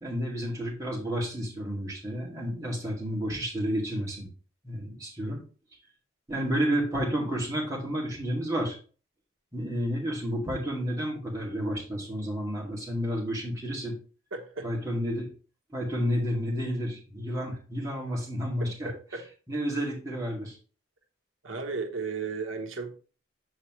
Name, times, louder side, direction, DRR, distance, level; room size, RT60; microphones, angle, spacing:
voice 1, 0.0-4.3 4.6-5.4 6.3-8.8 9.5-13.9 14.6-15.3 15.7-18.9 19.5-20.6, equal, 15° right, 2.1 m, -31 dB
voice 2, 14.3-14.7 18.8-19.2 21.4-22.9, right 4 dB, 80° right, 1.0 m, -34 dB
7.4 x 4.8 x 3.1 m
head